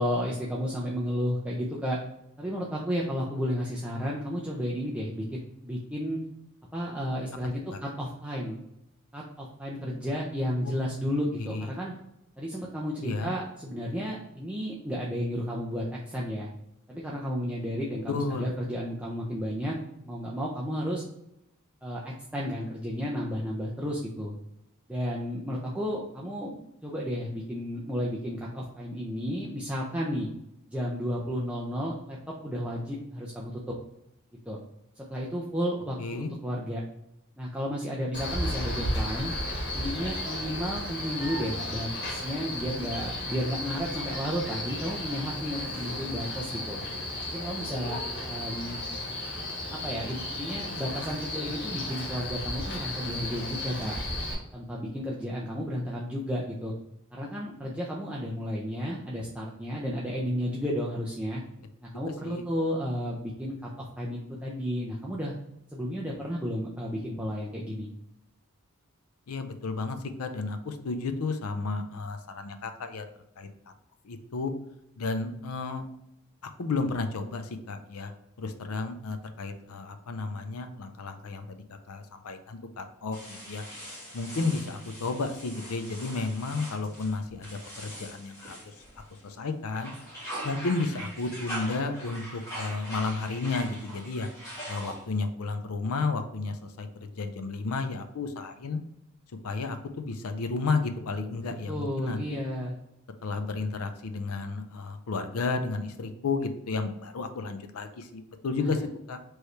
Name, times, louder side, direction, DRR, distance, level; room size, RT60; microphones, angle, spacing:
voice 1, 0.0-2.0 2.4-6.2 6.7-8.6 9.1-11.9 12.4-16.5 16.9-19.8 20.0-21.0 21.8-24.3 24.9-30.3 30.7-33.7 34.5-34.6 35.0-36.8 37.4-39.3 39.7-46.8 47.3-48.8 49.7-53.9 54.5-56.7 57.1-61.4 61.8-65.3 65.7-67.9 101.7-102.7 108.6-108.8, equal, 5° right, -4 dB, 0.5 m, -32 dB
voice 2, 10.6-11.0 11.5-11.7 13.0-13.3 18.1-18.5 36.0-36.3 62.2-62.4 69.3-73.0 73.4-73.5 74.0-74.5 75.0-75.8 76.4-78.1 78.4-83.6 84.1-88.7 89.2-89.9 90.4-94.3 94.7-96.9 97.2-98.8 99.4-102.2 103.2-108.8 109.1-109.2, left 3 dB, 85° left, 8 dB, 0.6 m, -32 dB
Male speech man speaking, 38.1-54.3, left 1 dB, 55° left, 1.7 m, -34 dB
sound 1, 83.1-89.3 89.7-95.3, right 1 dB, 15° left, 1.7 m, -42 dB
4.6 x 3.1 x 3.2 m, 0.81 s
head